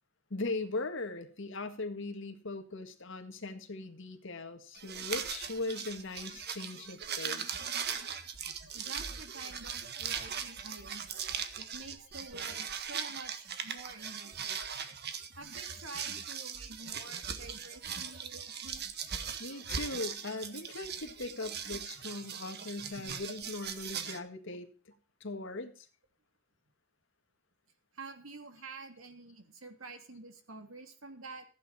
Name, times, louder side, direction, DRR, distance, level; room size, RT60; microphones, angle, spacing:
voice 1, 0.3-7.6 19.4-24.7 25.2-25.9, left 2 dB, 65° left, 8 dB, 1.8 m, -39 dB
sound 1, 4.8-24.2, right 7 dB, 55° right, 1.6 m, -39 dB
voice 2, 8.7-14.6 15.4-18.9 27.9-31.5, right 3 dB, 75° right, 6 dB, 2.8 m, -48 dB
15.0 x 9.4 x 4.3 m, 0.40 s
head